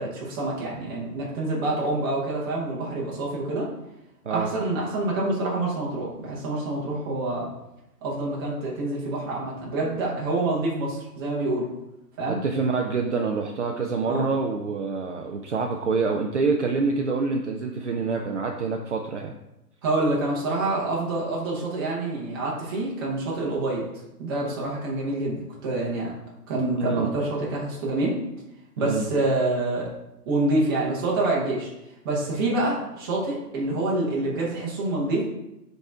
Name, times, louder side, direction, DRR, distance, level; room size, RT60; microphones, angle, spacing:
voice 1, 0.0-3.7 4.3-7.5 8.0-11.7 12.2-12.4 14.1-14.3 19.8-23.9 24.2-26.1 26.5-28.2 28.8-29.9 30.2-31.7 32.0-35.2, right 2 dB, 15° right, -5 dB, 1.1 m, -27 dB
voice 2, 12.3-19.3 26.8-27.1 28.8-29.1, right 4 dB, 45° right, 2 dB, 0.6 m, -26 dB
10.0 x 4.1 x 3.6 m, 0.90 s
hypercardioid pair, 165°, 49 cm